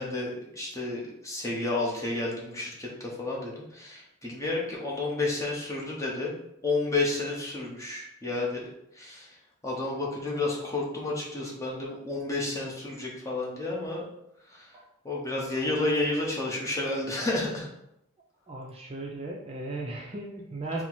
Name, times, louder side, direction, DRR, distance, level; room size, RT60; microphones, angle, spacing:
voice 1, 0.0-8.7 8.9-9.4 9.6-14.0 14.5-14.7 15.0-17.7, left 2 dB, 15° left, -3 dB, 0.8 m, -31 dB
voice 2, 18.5-20.8, right 2 dB, 30° right, -1 dB, 0.4 m, -36 dB
4.2 x 2.0 x 4.3 m, 0.81 s
head